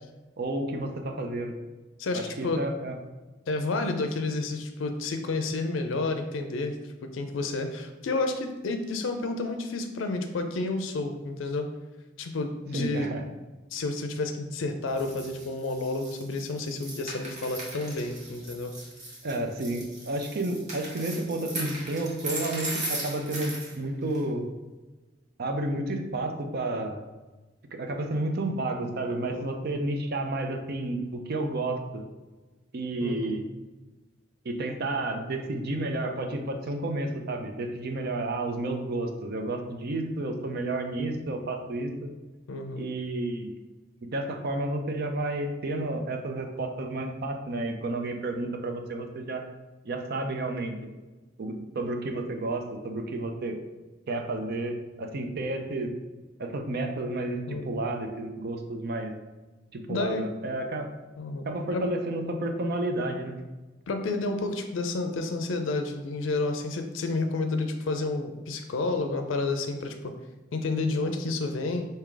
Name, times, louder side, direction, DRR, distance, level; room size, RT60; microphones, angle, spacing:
voice 1, 0.4-1.6 2.1-3.0 12.7-13.2 19.2-24.5 25.4-27.0 27.7-32.0 32.7-33.4 34.4-42.1 42.8-43.5 44.1-49.4 49.8-50.8 51.4-53.6 54.1-55.9 56.4-59.1 59.7-60.9 61.4-63.4, right 2 dB, 55° right, 4 dB, 0.5 m, -31 dB
voice 2, 2.0-2.6 3.5-6.8 7.0-11.7 12.2-13.2 13.7-18.7 23.2-23.3 29.3-29.6 33.0-33.4 42.5-42.8 57.5-57.7 59.9-60.3 61.2-61.8 63.9-70.1 70.5-71.9, left 3 dB, 85° left, 6 dB, 0.4 m, -30 dB
sound 1, 14.9-23.7 24.1-24.2, right 2 dB, 40° right, 1.0 m, -38 dB
4.6 x 2.8 x 3.7 m, 1.2 s
head